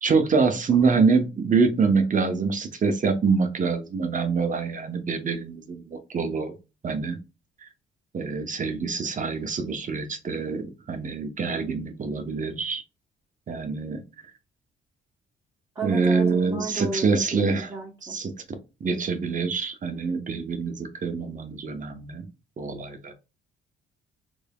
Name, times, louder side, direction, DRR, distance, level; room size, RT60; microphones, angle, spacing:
voice 1, 0.0-6.5 6.8-7.2 8.1-12.8 13.5-14.0 15.8-17.7 18.1-18.3 18.8-22.2 22.6-23.1, right 4 dB, 40° right, 7 dB, 0.8 m, -25 dB
voice 2, 15.7-18.2, right 3 dB, 20° right, -3 dB, 1.2 m, -33 dB
3.5 x 3.4 x 2.3 m, 0.29 s
cardioid pair, 90°, 20 cm